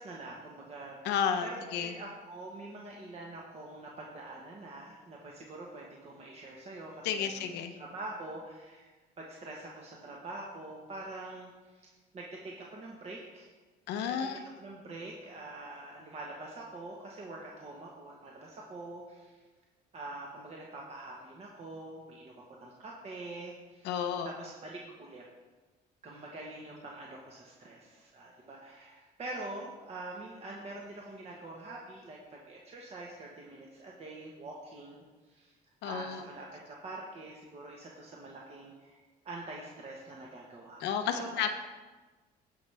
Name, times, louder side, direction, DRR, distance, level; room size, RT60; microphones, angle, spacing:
voice 1, 0.0-1.2 1.4-7.5 7.8-13.5 14.1-19.4 19.9-24.0 24.2-25.3 26.0-35.5 35.8-41.5, right 2 dB, 40° right, -2 dB, 1.3 m, -45 dB
voice 2, 1.0-1.9 7.0-7.8 13.9-14.4 23.8-24.3 35.8-36.2 40.8-41.5, left 8 dB, 85° left, 7 dB, 0.8 m, -32 dB
16.5 x 5.6 x 3.4 m, 1.3 s
cardioid pair, 110°, 17 cm